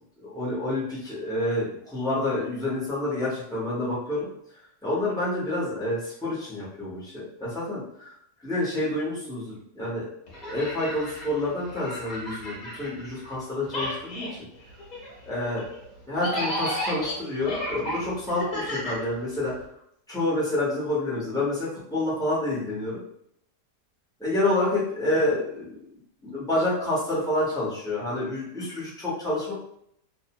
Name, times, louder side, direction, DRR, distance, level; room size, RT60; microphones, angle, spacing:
voice 1, 0.2-4.3 4.8-7.8 8.4-10.1 10.4-14.3 15.3-15.6 16.1-19.5 20.1-23.0 24.2-25.8 26.2-29.5, left 1 dB, 5° left, -8 dB, 0.6 m, -28 dB
sound 1, 10.3-13.4 13.6-19.6, equal, 35° left, 0.7 m, -34 dB
2.7 x 2.1 x 2.8 m, 0.72 s
omnidirectional pair, 1.7 m